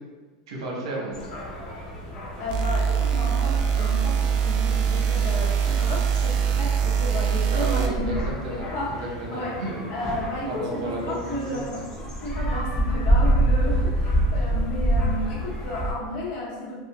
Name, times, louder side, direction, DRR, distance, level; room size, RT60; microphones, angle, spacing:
voice 1, 0.5-1.2 7.5-9.8 10.5-11.6 14.4-14.5, right 2 dB, 90° right, -3 dB, 1.1 m, -32 dB
sound 1, 1.1-15.9, right 1 dB, 25° left, 0.8 m, -28 dB
voice 2, 2.4-8.1 8.5-9.0 9.3-9.6 9.9-11.9 12.2-16.8, left 1 dB, 55° left, -5 dB, 0.9 m, -33 dB
sound 2, 2.5-7.9, right 7 dB, 40° right, 0.4 m, -23 dB
4.9 x 2.1 x 2.3 m, 1.4 s
supercardioid pair, 150°, 3 cm